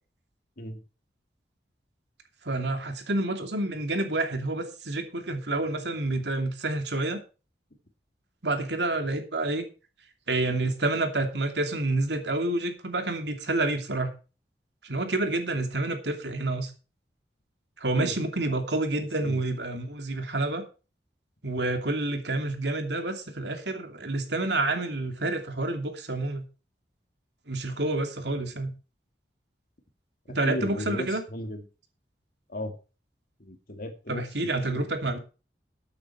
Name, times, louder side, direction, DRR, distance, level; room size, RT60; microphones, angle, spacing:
voice 1, 2.4-7.2 8.4-9.6 10.3-14.1 14.8-16.7 17.8-20.6 21.4-26.4 27.5-28.7 30.3-31.2 34.1-35.2, right 2 dB, 75° right, 6 dB, 2.7 m, -28 dB
voice 2, 30.3-31.6 32.5-32.7 33.4-34.2 34.7-34.9, left 1 dB, 55° left, 6 dB, 2.4 m, -36 dB
13.5 x 8.7 x 4.5 m, 0.33 s
head